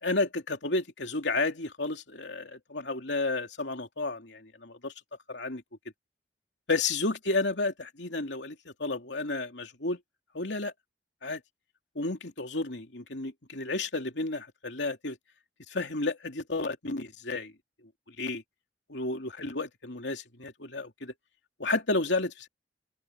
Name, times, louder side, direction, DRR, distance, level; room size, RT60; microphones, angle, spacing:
voice 1, 0.0-4.9 5.3-5.6 6.7-10.0 10.3-10.7 11.2-11.4 11.9-15.2 15.7-17.5 18.2-18.4 18.9-21.1 21.6-22.5, left 2 dB, 85° left, 2.8 m, -32 dB
open air
head